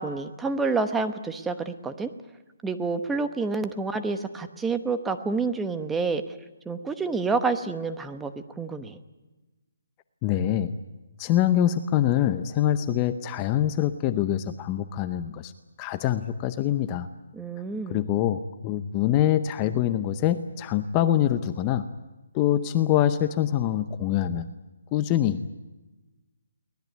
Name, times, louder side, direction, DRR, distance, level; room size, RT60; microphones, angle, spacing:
voice 1, 0.0-2.1 2.6-6.4 6.7-9.0 17.3-18.0, right 4 dB, 5° right, 8 dB, 1.0 m, -28 dB
voice 2, 10.2-10.8 11.2-15.5 15.8-17.1 17.9-21.9 22.3-24.5 24.9-25.5, left 11 dB, 20° left, 11 dB, 0.7 m, -24 dB
23.5 x 19.0 x 9.3 m, 1.1 s
hypercardioid pair, 165°, 0 cm